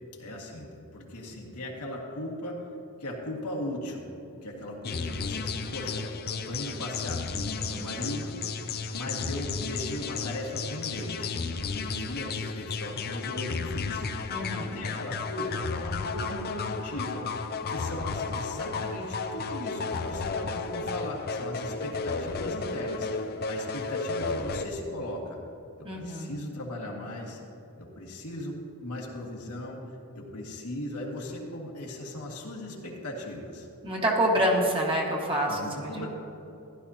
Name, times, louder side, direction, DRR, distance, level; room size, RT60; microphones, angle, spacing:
voice 1, 0.2-2.6 3.0-4.1 4.4-8.4 8.9-11.4 11.7-14.1 14.3-17.3 17.7-25.4 25.8-27.4 27.8-29.8 30.1-33.7 35.4-36.1, left 1 dB, 85° left, -2 dB, 2.0 m, -38 dB
sound 1, 4.8-24.7, left 4 dB, 45° left, 0.6 m, -33 dB
voice 2, 14.3-14.7 25.8-26.3 33.8-36.1, right 1 dB, 25° right, -2 dB, 1.5 m, -27 dB
15.5 x 11.5 x 2.8 m, 2.9 s
head